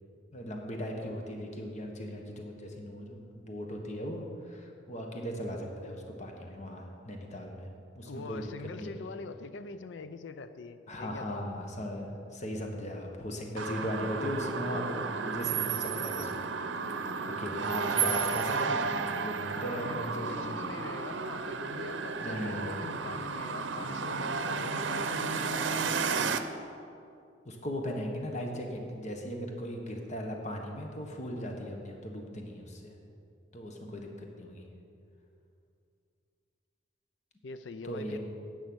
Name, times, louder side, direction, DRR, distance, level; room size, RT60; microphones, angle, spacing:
voice 1, 0.3-7.7 7.9-8.5 8.8-8.9 10.9-16.5 16.9-20.5 22.2-22.8 27.4-32.9 33.5-34.6 37.8-38.2, equal, 40° left, 2 dB, 1.3 m, -38 dB
voice 2, 8.0-11.5 19.5-26.1 37.4-38.2, left 4 dB, 75° left, 11 dB, 0.5 m, -43 dB
sound 1, 13.6-26.4, right 5 dB, 85° right, 0.6 m, -33 dB
10.5 x 8.2 x 6.2 m, 2.5 s
head